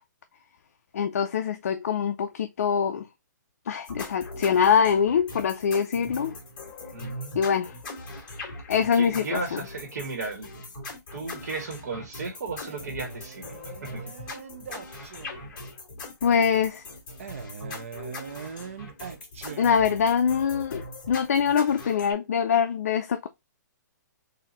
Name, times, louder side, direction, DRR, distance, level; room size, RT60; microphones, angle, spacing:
voice 1, 0.9-3.1 3.7-6.3 7.3-7.8 8.7-9.6 16.2-16.8 19.6-23.3, left 7 dB, 50° left, 0.4 m, -24 dB
sound 1, 3.8-22.1, left 2 dB, 25° left, 2.0 m, -41 dB
voice 2, 6.9-7.4 8.9-10.6 11.1-14.1 14.8-15.1, right 3 dB, 60° right, 1.5 m, -35 dB
Male speech man speaking, 12.6-15.6 17.2-20.2, right 6 dB, 45° right, 0.7 m, -42 dB
4.2 x 2.6 x 4.2 m
hypercardioid pair, 175°, 10 cm